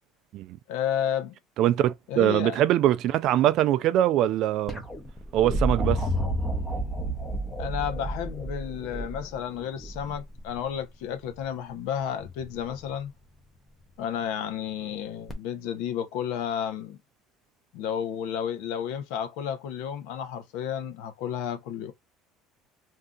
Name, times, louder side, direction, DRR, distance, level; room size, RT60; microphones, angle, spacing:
voice 1, 0.7-1.3 2.1-2.6 7.6-13.1 14.0-17.0 17.7-21.9, left 9 dB, 75° left, 0.7 m, -32 dB
voice 2, 1.6-4.8 5.3-6.0, right 12 dB, 50° right, 0.3 m, -23 dB
sound 1, 4.7-10.6 12.2-12.7 15.3-15.4, right 1 dB, 10° left, 0.7 m, -30 dB
2.7 x 2.4 x 3.6 m
cardioid pair, 160°, 0 cm